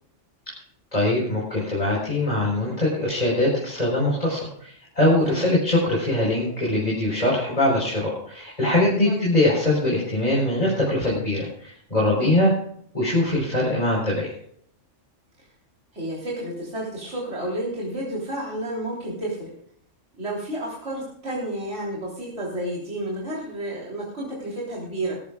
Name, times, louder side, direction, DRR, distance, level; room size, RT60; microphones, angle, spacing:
voice 1, 0.9-12.5 12.9-14.3, left 1 dB, 30° left, -4 dB, 4.6 m, -22 dB
voice 2, 5.2-5.5 9.1-9.2 12.2-12.5 15.9-19.5 20.2-25.2, right 1 dB, 65° right, -4 dB, 3.9 m, -31 dB
20.0 x 14.0 x 2.4 m, 0.66 s
omnidirectional pair, 1.3 m